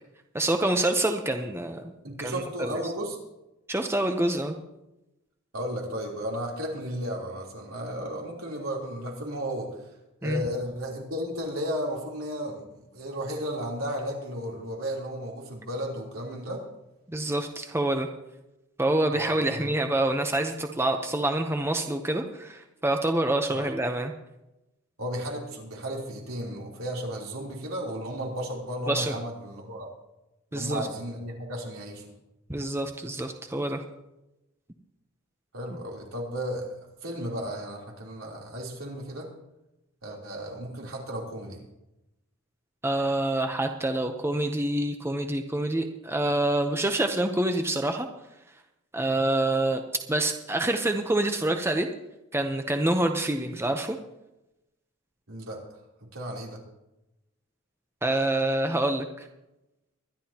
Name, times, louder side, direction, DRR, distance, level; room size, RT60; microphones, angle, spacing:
voice 1, 0.3-1.8 2.2-2.7 3.7-4.5 10.2-10.4 17.1-18.1 18.8-24.1 28.9-29.1 30.5-30.9 32.5-33.8 42.8-48.1 48.9-49.8 50.1-51.9 52.3-54.0 58.0-59.1, right 1 dB, 10° right, 5 dB, 0.8 m, -26 dB
voice 2, 2.0-3.2 5.5-9.7 10.2-16.6 19.1-19.7 23.5-23.7 25.0-29.9 30.5-32.0 35.5-36.7 37.0-39.3 40.0-41.6 55.3-55.6 56.0-56.6, equal, 80° right, -2 dB, 3.5 m, -34 dB
23.0 x 11.0 x 2.9 m, 0.94 s
head